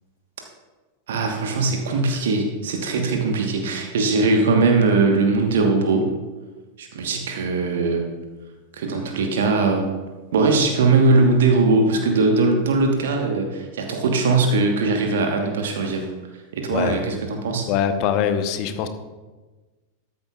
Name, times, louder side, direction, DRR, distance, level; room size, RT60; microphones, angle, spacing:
voice 1, 1.1-6.1 6.8-8.0 8.7-9.9 10.3-16.1 16.5-17.7, right 3 dB, 60° right, 3 dB, 1.2 m, -20 dB
voice 2, 16.7-17.0 17.7-18.9, left 8 dB, 40° left, 10 dB, 0.9 m, -23 dB
13.5 x 11.0 x 2.4 m, 1.3 s
figure-of-eight pair, 90°, 0 cm